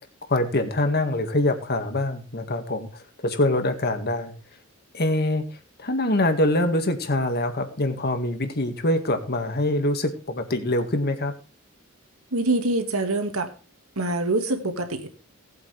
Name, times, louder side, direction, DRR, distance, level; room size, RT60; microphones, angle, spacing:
voice 1, 0.3-4.3 4.9-5.4 5.8-11.3, left 1 dB, 50° left, 7 dB, 1.8 m, -24 dB
voice 2, 12.3-13.5 14.0-15.1, right 2 dB, 85° right, 6 dB, 2.0 m, -25 dB
18.0 x 8.4 x 3.4 m, 0.36 s
head